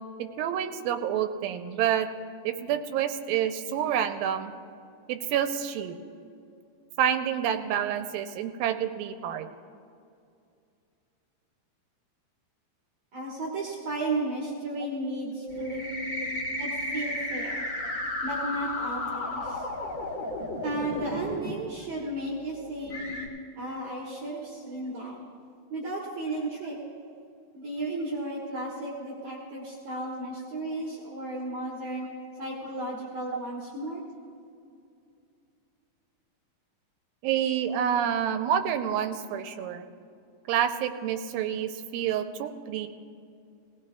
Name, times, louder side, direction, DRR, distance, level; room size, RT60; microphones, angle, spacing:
voice 1, 0.2-2.1 2.4-4.5 5.1-6.0 7.0-9.5 15.4-15.7 17.8-17.9 22.6-22.7 37.2-39.9 40.5-42.9, right 9 dB, 85° right, 7 dB, 2.4 m, -28 dB
voice 2, 13.1-15.8 16.6-17.6 18.2-19.7 20.6-23.0 23.6-25.2 25.7-26.8 27.5-32.1 32.4-34.0, right 2 dB, 60° right, -3 dB, 2.5 m, -34 dB
sound 1, 15.5-21.5 22.3-22.4 22.9-23.3, left 1 dB, 45° left, 1.2 m, -33 dB
19.0 x 17.5 x 2.3 m, 2.4 s
omnidirectional pair, 4.1 m